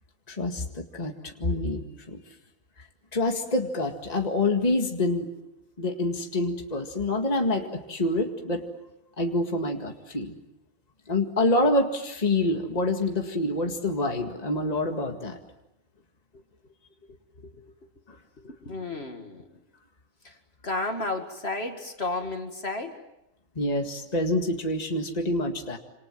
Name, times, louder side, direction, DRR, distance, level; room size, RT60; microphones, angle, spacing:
voice 1, 0.3-1.8 2.1-2.2 3.1-5.3 5.8-8.7 9.2-10.4 11.1-15.4 23.6-25.8, left 2 dB, 30° left, 3 dB, 2.1 m, -26 dB
voice 2, 17.4-17.7 18.4-19.5 20.2-20.3 20.6-23.0, left 2 dB, 50° left, 5 dB, 2.4 m, -33 dB
27.5 x 27.0 x 7.5 m, 0.88 s
omnidirectional pair, 1.4 m